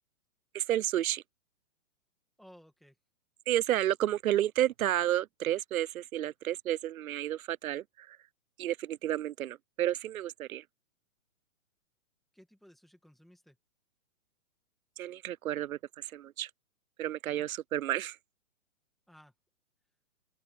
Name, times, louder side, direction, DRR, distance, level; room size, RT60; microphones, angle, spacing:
voice 1, 0.5-1.2 3.5-8.2 8.6-10.6 15.0-15.8 16.1-16.5 17.0-18.2, right 12 dB, 85° right, 0.6 m, -31 dB
voice 2, 2.4-3.0 12.3-13.6 17.4-17.5 19.1-19.3, equal, ahead, 1.9 m, -57 dB
open air
hypercardioid pair, 180°, 41 cm